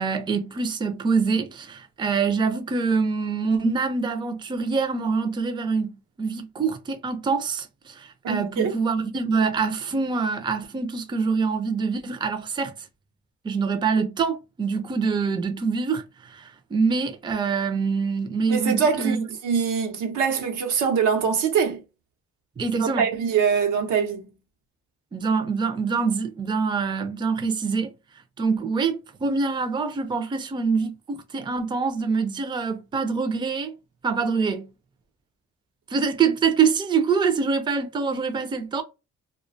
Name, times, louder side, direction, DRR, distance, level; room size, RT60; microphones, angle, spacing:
voice 1, 0.0-12.9 13.4-19.3 22.6-23.1 25.1-27.9 28.4-33.8 34.0-34.7 35.9-38.8, right 5 dB, 15° right, 0.4 m, -25 dB
voice 2, 8.2-8.8 18.5-19.2 19.4-21.8 22.8-24.3, right 6 dB, 90° right, 0.7 m, -23 dB
2.3 x 2.2 x 2.5 m
cardioid pair, 90°, 30 cm